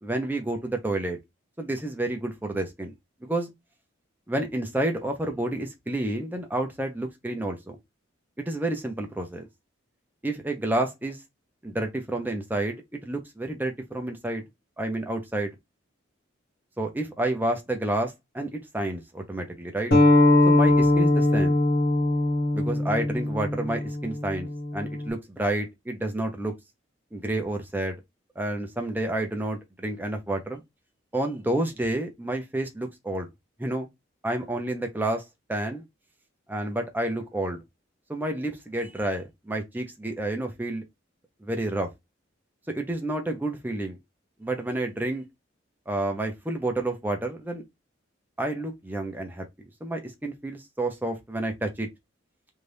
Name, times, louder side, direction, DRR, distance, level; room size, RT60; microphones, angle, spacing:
voice 1, 0.0-1.2 1.6-2.9 3.2-3.5 4.3-7.8 8.4-9.5 10.2-11.2 11.6-14.4 14.8-15.5 16.8-19.9 20.5-21.6 22.5-26.5 27.1-28.0 28.4-30.6 31.1-33.3 33.6-33.9 34.2-35.2 35.5-35.8 36.5-37.6 38.1-40.8 41.4-41.9 42.7-44.0 44.4-45.2 45.9-47.6 48.4-49.4 49.8-51.9, right 1 dB, 10° right, 0.6 m, -29 dB
sound 1, 19.9-25.1, left 2 dB, 55° left, 1.2 m, -21 dB
2.7 x 2.4 x 3.3 m
head